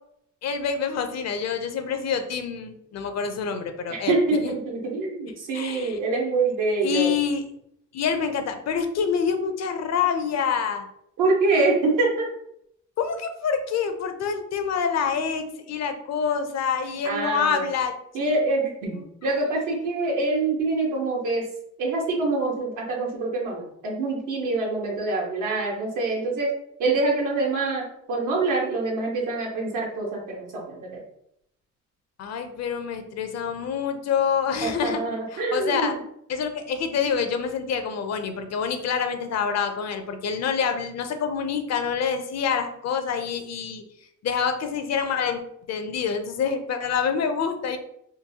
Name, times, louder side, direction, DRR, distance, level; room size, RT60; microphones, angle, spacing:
voice 1, 0.4-4.1 4.4-4.5 5.5-6.0 6.8-7.4 7.9-10.9 13.0-17.9 32.2-35.0 35.3-35.9 36.3-43.8 44.2-45.4 45.7-47.8, left 6 dB, 60° left, 7 dB, 0.6 m, -26 dB
voice 2, 3.9-7.1 11.2-12.3 17.0-17.6 18.1-19.0 19.2-21.5 21.8-26.5 26.8-31.0 34.6-36.0, right 3 dB, 85° right, -2 dB, 1.1 m, -25 dB
3.8 x 2.3 x 2.7 m, 0.74 s
cardioid pair, 90°, 30 cm